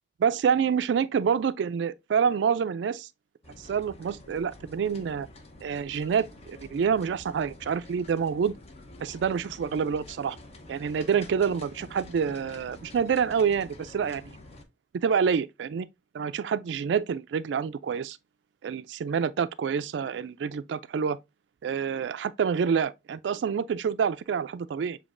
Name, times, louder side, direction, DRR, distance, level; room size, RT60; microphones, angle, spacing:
voice 1, 0.2-3.1 3.6-5.3 5.6-8.5 9.0-10.4 10.7-14.4 15.0-15.9 16.1-18.2 18.6-21.2 21.6-25.0, right 7 dB, 85° right, 0.3 m, -27 dB
sound 1, 3.4-14.7, left 2 dB, 35° left, 0.8 m, -48 dB
7.0 x 2.8 x 2.5 m
head